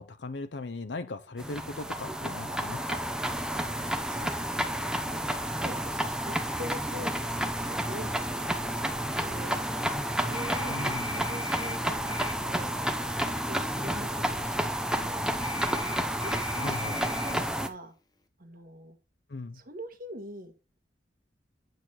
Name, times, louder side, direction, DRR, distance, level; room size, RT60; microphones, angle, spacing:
voice 1, 0.0-3.0 10.7-11.3 16.6-17.0 19.3-19.6, left 2 dB, 70° left, 0.7 m, -38 dB
sound 1, 1.4-17.7, right 1 dB, 5° right, 0.9 m, -31 dB
voice 2, 3.5-8.2 8.5-9.8 10.2-10.7 11.0-12.7 13.2-15.3 16.2-17.9 18.4-18.9 19.5-20.5, equal, 55° right, 1.4 m, -44 dB
sound 2, 10.3-11.8 12.1-12.3 15.4-17.4, left 2 dB, 20° left, 0.9 m, -39 dB
9.3 x 6.5 x 4.3 m
head